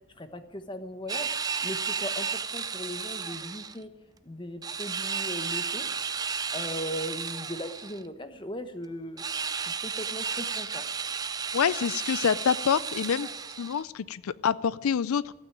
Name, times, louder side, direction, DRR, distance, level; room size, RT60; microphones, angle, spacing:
voice 1, 0.2-1.3 1.6-3.9 4.2-5.9 6.5-9.2 9.6-10.8, equal, 20° left, 9 dB, 1.1 m, -38 dB
sound 1, 1.1-3.8 4.6-8.0 9.2-13.8, right 6 dB, 20° right, 0.4 m, -33 dB
voice 2, 11.5-13.3 13.6-15.3, left 7 dB, 90° left, 19 dB, 0.4 m, -26 dB
15.5 x 9.0 x 8.9 m, 1.1 s
head